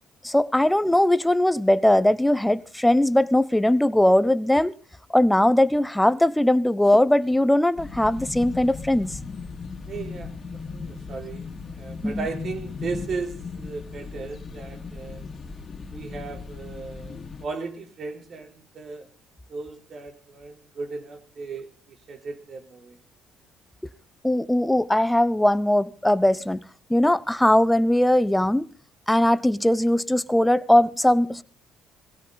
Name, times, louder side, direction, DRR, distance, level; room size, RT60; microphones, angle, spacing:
voice 1, 0.2-4.7 5.1-9.2 12.0-12.3 24.2-26.6 26.9-28.7 29.1-31.4, left 1 dB, 5° left, 0.9 m, -20 dB
sound 1, 7.8-17.5, left 4 dB, 40° left, 2.3 m, -37 dB
voice 2, 9.9-15.2 15.9-19.1 19.5-23.0, right 4 dB, 50° right, 3.8 m, -36 dB
19.0 x 17.0 x 4.0 m
supercardioid pair, 80°, 0 cm